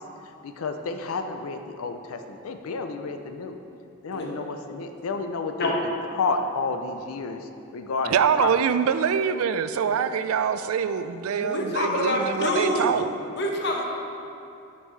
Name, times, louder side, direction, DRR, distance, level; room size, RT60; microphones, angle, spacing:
voice 1, 0.4-3.6 4.0-5.7 6.2-8.6, left 4 dB, 90° left, 7 dB, 0.5 m, -31 dB
voice 2, 8.1-13.1, right 7 dB, 85° right, 11 dB, 0.3 m, -24 dB
voice 3, 11.3-13.0 13.4-13.8, left 1 dB, 55° left, -1 dB, 0.9 m, -26 dB
9.5 x 5.3 x 3.2 m, 2.7 s
head